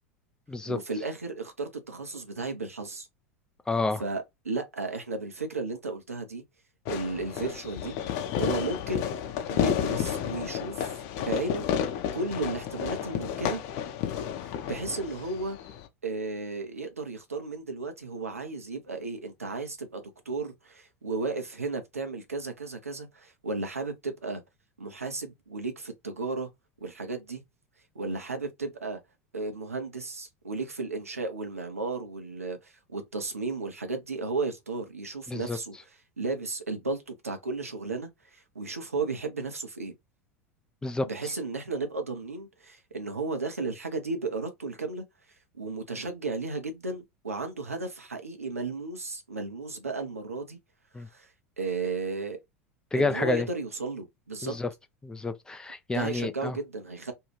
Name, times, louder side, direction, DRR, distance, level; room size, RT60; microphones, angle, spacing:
voice 1, 0.6-3.1 4.0-6.4 6.9-8.0 8.4-9.1 9.5-13.6 14.6-15.6 16.0-24.4 24.8-26.5 26.8-27.4 27.9-29.0 29.3-39.9 41.0-45.0 45.6-50.6 51.1-51.3 51.6-52.4 52.9-54.6 55.9-57.1, right 3 dB, 80° right, 0.7 m, -34 dB
voice 2, 3.7-4.0 35.3-35.6 40.8-41.1 50.9-51.1 52.9-53.5 54.4-54.7 55.0-56.6, left 3 dB, 10° left, 0.4 m, -29 dB
Fireworks, 6.8-15.9, left 9 dB, 45° left, 0.7 m, -31 dB
2.7 x 2.3 x 3.1 m
figure-of-eight pair, 80°, 8 cm